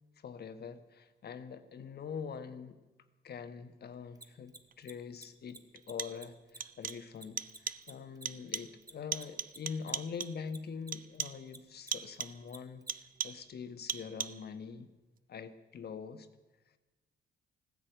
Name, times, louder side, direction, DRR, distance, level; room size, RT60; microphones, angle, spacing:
voice 1, 0.2-2.8 3.2-12.8 13.2-14.9 15.3-16.3, left 6 dB, 55° left, 9 dB, 1.3 m, -44 dB
Mechanisms, 4.2-10.9 11.2-12.9, right 2 dB, 20° right, 1.4 m, -51 dB
sound 1, 4.7-4.8 5.8-6.3 6.6-7.1 7.4-7.9 8.3-8.8 9.1-10.5 10.9-11.5 11.9-12.5 12.9-13.5 13.9-14.5, right 8 dB, 45° right, 0.6 m, -40 dB
16.0 x 10.0 x 8.1 m, 1.1 s
cardioid pair, 90°, 20 cm